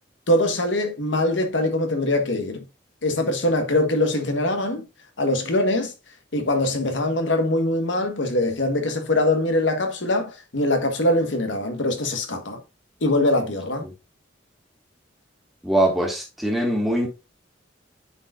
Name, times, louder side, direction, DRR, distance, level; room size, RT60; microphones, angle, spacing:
voice 1, 0.3-2.6 3.0-4.8 5.2-5.9 6.3-12.6 13.0-13.9, left 1 dB, 75° left, 1.4 m, -22 dB
voice 2, 15.6-17.1, right 1 dB, ahead, 1.9 m, -22 dB
9.7 x 4.9 x 2.5 m
head